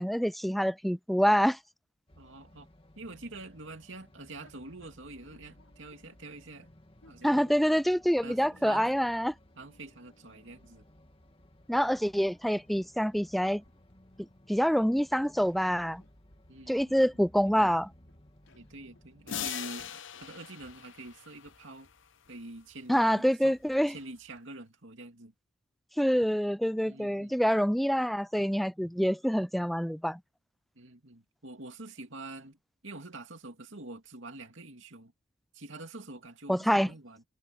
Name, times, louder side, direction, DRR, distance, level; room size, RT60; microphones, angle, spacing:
voice 1, 0.0-1.6 7.2-9.3 11.7-13.6 14.5-16.0 16.7-17.9 22.9-23.9 26.0-30.2 36.5-36.9, equal, ahead, 0.3 m, -26 dB
sound 1, 2.1-19.5, left 1 dB, 25° left, 2.2 m, -59 dB
voice 2, 2.2-2.7 3.0-6.7 7.1-7.5 8.2-8.9 9.6-10.9 16.5-17.1 17.6-17.7 18.5-21.9 22.3-23.6 23.9-25.3 26.9-27.6 30.8-32.6 32.8-35.1 35.5-37.2, right 2 dB, 65° right, 2.6 m, -46 dB
sound 2, 4.4-24.4, left 1 dB, 85° left, 5.8 m, -65 dB
sound 3, 19.3-22.0, left 9 dB, 65° left, 0.8 m, -40 dB
head